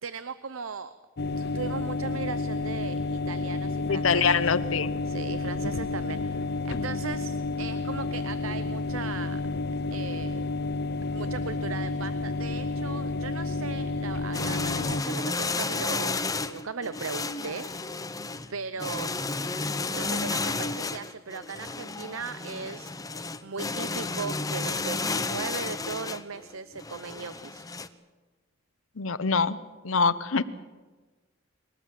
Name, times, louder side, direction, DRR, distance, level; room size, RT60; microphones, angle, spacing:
voice 1, 0.0-0.9 1.4-4.4 5.1-9.4 9.9-10.5 11.1-17.7 18.5-19.1 19.9-22.9 23.4-27.7, right 5 dB, 85° right, 13 dB, 0.8 m, -38 dB
sound 1, 1.2-15.0, left 3 dB, 50° left, 0.6 m, -30 dB
voice 2, 3.8-4.9 29.0-29.6 29.8-30.4, left 5 dB, 75° left, 14 dB, 0.9 m, -24 dB
sound 2, 14.3-27.9, left 3 dB, 15° left, 0.8 m, -32 dB
22.5 x 18.0 x 7.7 m, 1.3 s
head